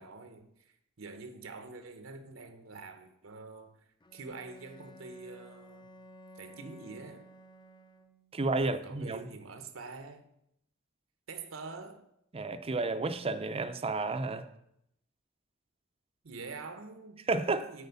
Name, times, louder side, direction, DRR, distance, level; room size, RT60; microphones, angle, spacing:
voice 1, 0.0-3.8 4.1-5.9 6.4-7.3 8.4-10.2 11.3-12.0 16.2-17.2 17.6-17.9, right 3 dB, 80° right, 0.9 m, -46 dB
Bowed string instrument, 4.0-8.4, equal, 20° left, 0.6 m, -54 dB
voice 2, 8.3-9.2 12.3-14.5 17.3-17.7, right 3 dB, 30° right, 0.5 m, -31 dB
8.1 x 4.4 x 7.1 m
head